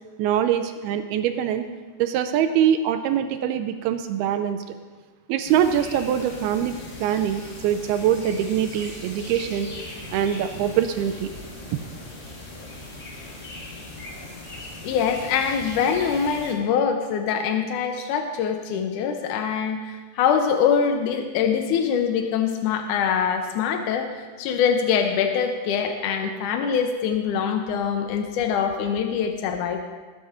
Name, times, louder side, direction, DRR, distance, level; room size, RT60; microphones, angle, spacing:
voice 1, 0.2-1.6 2.0-4.8 5.3-6.7 7.0-9.7 10.1-11.3 11.7-11.8, right 9 dB, 80° right, 9 dB, 2.5 m, -23 dB
sound 1, 5.4-16.5, left 1 dB, 30° left, 2.0 m, -39 dB
voice 2, 14.8-29.8, left 7 dB, 80° left, 4 dB, 1.8 m, -24 dB
20.5 x 6.8 x 5.0 m, 1.4 s
omnidirectional pair, 4.6 m